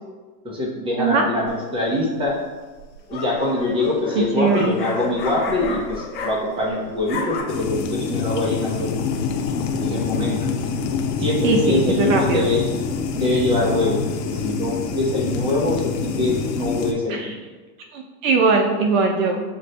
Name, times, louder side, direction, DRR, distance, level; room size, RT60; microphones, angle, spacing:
voice 1, 0.4-2.4 3.1-9.1 9.8-10.4 11.2-12.6 13.1-17.3, left 2 dB, 10° right, -3 dB, 0.8 m, -23 dB
sound 1, 1.5-1.9 2.8-6.7 6.9-7.4, left 4 dB, 20° left, 0.6 m, -31 dB
voice 2, 4.2-4.8 11.4-12.5 17.1-17.4 17.9-19.4, right 4 dB, 55° right, 3 dB, 0.5 m, -20 dB
sound 2, 7.5-16.9, left 5 dB, 80° left, 0.8 m, -25 dB
7.5 x 2.5 x 2.2 m, 1.3 s
hypercardioid pair, 120°, 49 cm